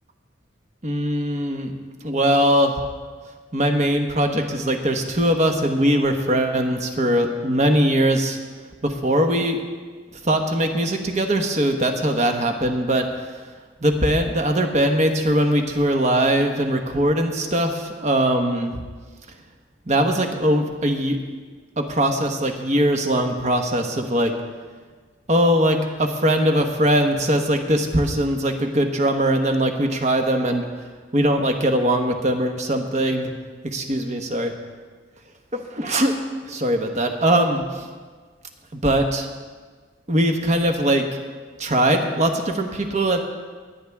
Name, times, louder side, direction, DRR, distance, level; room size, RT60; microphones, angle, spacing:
voice 1, 0.8-1.7 2.0-2.8 3.5-8.4 8.8-9.6 10.2-13.2 13.8-18.8 19.9-21.2 21.8-24.3 25.3-30.7 31.1-33.3 33.6-34.5 35.5-37.9 38.7-39.3 40.1-41.0 41.6-43.2, right 1 dB, 40° right, 4 dB, 1.1 m, -21 dB
19.0 x 9.8 x 3.5 m, 1.5 s
head